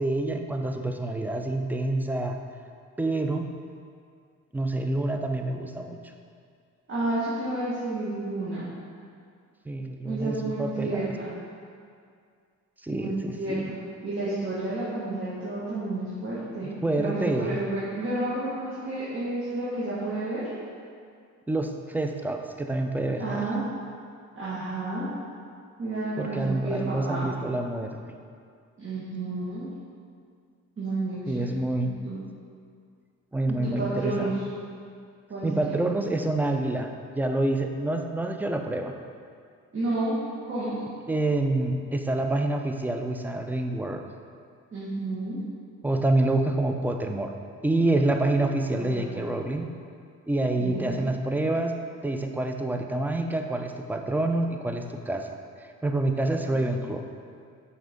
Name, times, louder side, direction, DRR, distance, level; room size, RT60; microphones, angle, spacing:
voice 1, 0.0-2.4 3.0-3.5 4.5-6.0 9.7-11.2 12.8-13.7 16.8-17.6 21.5-23.5 26.2-28.0 31.3-31.9 33.3-34.3 35.4-38.9 41.1-44.0 45.8-47.3 47.6-49.7 50.3-51.7 52.0-55.3 55.8-57.0, right 2 dB, 5° right, 5 dB, 0.4 m, -27 dB
voice 2, 6.9-8.7 10.0-11.3 12.9-16.7 17.0-20.4 23.2-23.6 24.3-25.1 25.8-27.3 28.8-29.7 30.8-32.2 33.5-34.4 35.3-35.7 39.7-40.2 40.4-40.7 44.7-45.4 48.8-49.3 50.6-50.9 56.5-56.8, right 2 dB, 40° right, -10 dB, 1.5 m, -31 dB
6.4 x 4.4 x 3.6 m, 2.2 s
cardioid pair, 90°, 30 cm